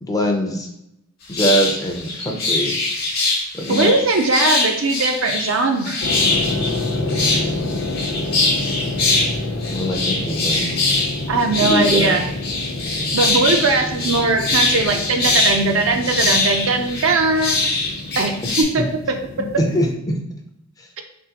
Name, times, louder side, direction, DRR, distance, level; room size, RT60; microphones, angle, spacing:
voice 1, 0.0-0.7 1.3-2.7 3.5-3.9 9.7-10.7 11.6-12.2 18.4-18.5 19.4-19.5 19.7-20.1, equal, 15° left, 1 dB, 0.5 m, -22 dB
sound 1, 1.3-18.6, left 3 dB, 50° left, 0.9 m, -22 dB
voice 2, 3.6-6.0 11.3-12.2 13.1-17.6 18.2-19.5, right 3 dB, 70° right, 5 dB, 0.5 m, -20 dB
sound 2, 6.0-19.9, left 2 dB, 75° left, 0.6 m, -28 dB
3.6 x 3.5 x 2.8 m, 0.83 s
head